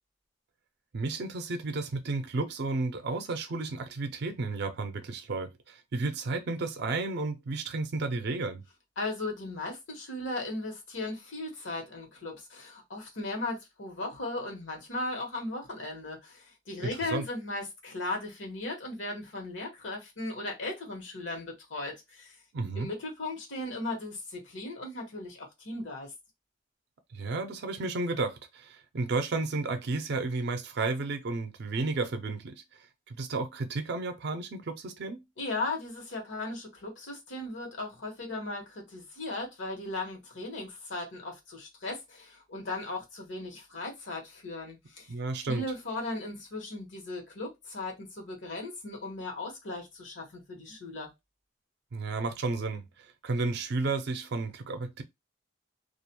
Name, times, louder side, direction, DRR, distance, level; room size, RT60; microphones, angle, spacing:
voice 1, 0.9-8.6 16.8-17.2 22.5-22.9 27.1-35.2 45.1-45.6 51.9-55.0, right 3 dB, 60° right, 0.4 m, -32 dB
voice 2, 9.0-22.3 22.7-26.1 35.4-45.1 45.5-51.1, left 2 dB, 85° left, 1.1 m, -37 dB
2.4 x 2.1 x 2.8 m
head